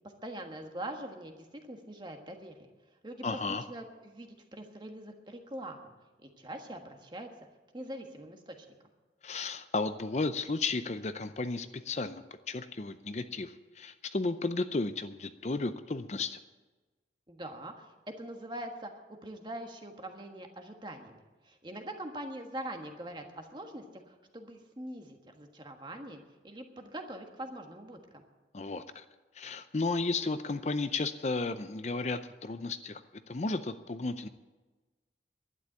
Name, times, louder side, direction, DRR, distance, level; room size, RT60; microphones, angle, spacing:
voice 1, 0.2-2.7 3.0-5.9 6.2-7.3 7.7-8.7 17.3-18.9 19.2-28.2, right 1 dB, 25° right, 4 dB, 1.4 m, -43 dB
voice 2, 3.2-3.6 9.2-16.4 28.5-29.0 29.3-34.3, left 3 dB, 40° left, 10 dB, 0.5 m, -34 dB
11.5 x 10.0 x 9.0 m, 1.2 s
head